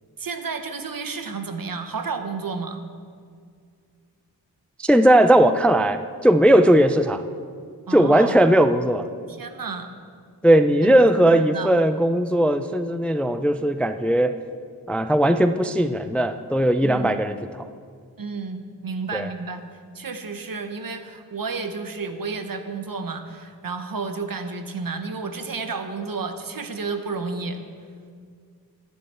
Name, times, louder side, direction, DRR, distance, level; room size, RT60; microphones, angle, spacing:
voice 1, 0.2-2.8 7.9-8.4 9.3-9.9 10.8-11.7 16.8-17.2 18.2-19.6 19.9-27.6, right 4 dB, 60° right, 7 dB, 1.0 m, -31 dB
voice 2, 4.8-7.2 7.9-9.1 10.4-14.4 14.9-17.7 19.1-19.3, right 1 dB, 5° left, 10 dB, 0.4 m, -18 dB
11.5 x 9.7 x 4.2 m, 2.1 s
cardioid pair, 45°, 38 cm